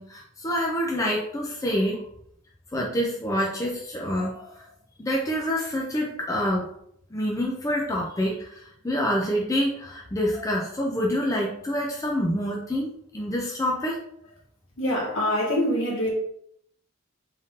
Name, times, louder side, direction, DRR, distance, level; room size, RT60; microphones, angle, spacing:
voice 1, 0.0-2.0 2.7-4.7 5.0-6.7 7.1-14.0, equal, 15° left, 0.4 m, -27 dB
voice 2, 14.8-16.1, equal, 65° left, 1.6 m, -24 dB
3.8 x 2.6 x 3.6 m
head